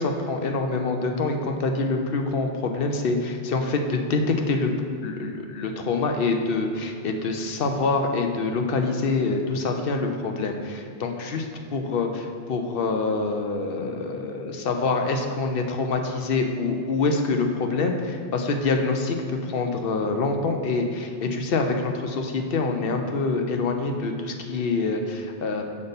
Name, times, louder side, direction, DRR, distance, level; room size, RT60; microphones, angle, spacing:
voice 1, 0.0-4.7 5.0-25.6, left 3 dB, 60° left, 4 dB, 0.8 m, -26 dB
6.6 x 5.3 x 4.0 m, 2.4 s
omnidirectional pair, 1.2 m